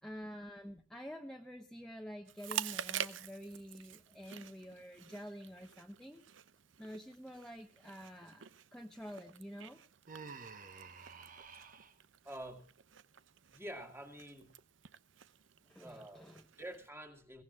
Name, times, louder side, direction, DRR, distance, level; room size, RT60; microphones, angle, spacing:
voice 1, 0.0-6.2 6.8-8.4 8.7-9.8 11.0-11.2 15.7-16.5, equal, 5° left, 0.9 m, -48 dB
Chewing mastication, 2.3-16.9, right 9 dB, 80° right, 0.7 m, -48 dB
Human voice, 10.1-11.9, right 5 dB, 45° right, 1.1 m, -50 dB
voice 2, 12.2-12.7 13.5-14.5 15.8-16.3 16.6-17.4, right 1 dB, 15° right, 2.0 m, -47 dB
22.0 x 17.5 x 2.4 m
head